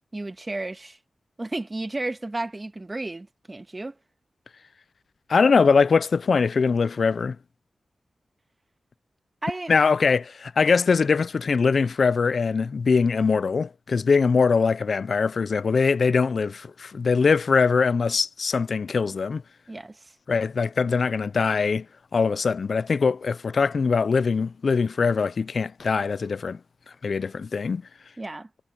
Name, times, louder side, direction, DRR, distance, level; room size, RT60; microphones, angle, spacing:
voice 1, 0.1-1.0 1.4-3.9 9.4-9.7 19.7-20.1 28.2-28.5, right 2 dB, 30° right, 1.7 m, -33 dB
voice 2, 5.3-7.4 9.7-19.4 20.3-21.9 22.1-26.6 27.0-27.8, left 5 dB, 70° left, 0.4 m, -22 dB
cardioid pair, 65°, 0 cm